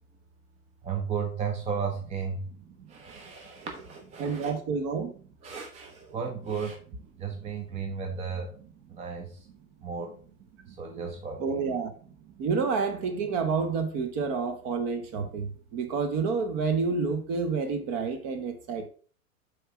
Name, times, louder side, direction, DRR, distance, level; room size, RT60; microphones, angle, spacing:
voice 1, 0.8-2.4 2.9-4.5 5.4-6.8 7.2-8.5 8.9-9.3 9.8-10.1 10.8-11.6, right 6 dB, 15° right, 0.7 m, -34 dB
voice 2, 4.2-5.2 10.6-10.7 11.4-11.9 12.4-18.9, right 5 dB, 35° right, 1.1 m, -29 dB
7.7 x 3.2 x 4.8 m
figure-of-eight pair, 95°, 44 cm